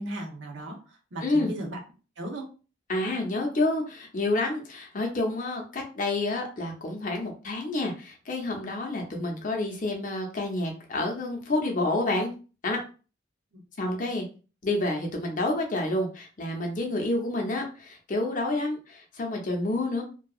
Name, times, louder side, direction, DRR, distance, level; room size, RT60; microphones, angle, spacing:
voice 1, 0.0-1.8 2.2-2.5 13.5-13.6, right 1 dB, 90° right, 0 dB, 0.8 m, -36 dB
voice 2, 2.9-12.3 12.6-12.8 13.8-14.3 14.6-20.0, left 2 dB, 45° left, 1 dB, 0.6 m, -29 dB
2.7 x 2.2 x 2.3 m, 0.35 s
head